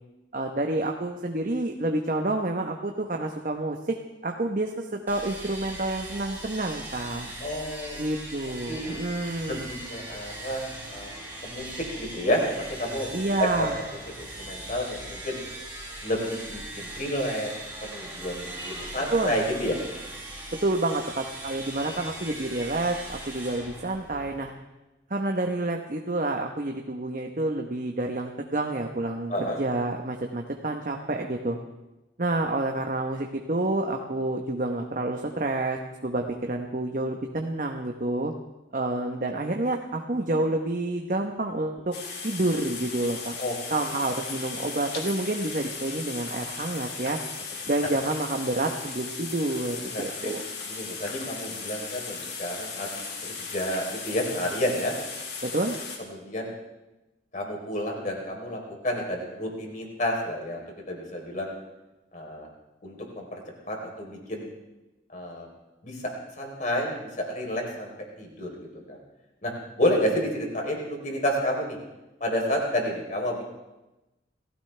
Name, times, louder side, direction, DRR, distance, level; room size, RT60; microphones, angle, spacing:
voice 1, 0.3-3.9 4.2-7.3 8.0-9.6 13.1-13.8 19.1-19.4 20.6-24.5 25.1-31.6 32.2-38.3 38.7-41.9 42.2-43.3 43.7-47.2 47.7-50.4 55.4-55.8, right 2 dB, 45° right, 3 dB, 1.0 m, -28 dB
sound 1, 5.1-24.5, right 1 dB, 10° right, 6.6 m, -40 dB
voice 2, 7.4-8.1 8.7-9.0 9.5-11.1 11.4-13.1 13.4-13.7 14.2-15.4 16.0-17.5 17.8-19.7 29.3-29.6 43.4-43.5 43.9-44.0 49.9-50.3 50.7-54.9 56.1-56.5 57.3-60.6 60.9-61.5 62.1-62.5 62.8-63.4 63.7-64.5 65.1-65.5 65.8-66.0 66.4-69.0 69.4-71.8 72.2-73.4, equal, 45° left, 0 dB, 3.7 m, -30 dB
sound 2, 41.9-56.0, left 4 dB, 60° left, 3.2 m, -37 dB
28.0 x 15.5 x 3.4 m, 1.0 s
head